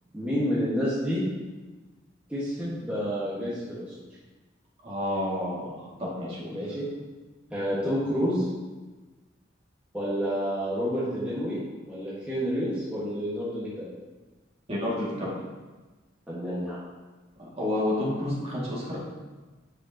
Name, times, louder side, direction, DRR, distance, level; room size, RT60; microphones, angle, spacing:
voice 1, 0.1-1.2 2.3-3.9 6.5-6.9 7.5-8.5 9.9-11.6 11.9-13.9 16.3-16.8, equal, 5° right, -10 dB, 1.5 m, -29 dB
voice 2, 4.8-6.6 14.7-15.3 17.6-19.0, left 1 dB, 35° right, -6 dB, 2.2 m, -30 dB
8.1 x 6.5 x 2.9 m, 1.2 s
head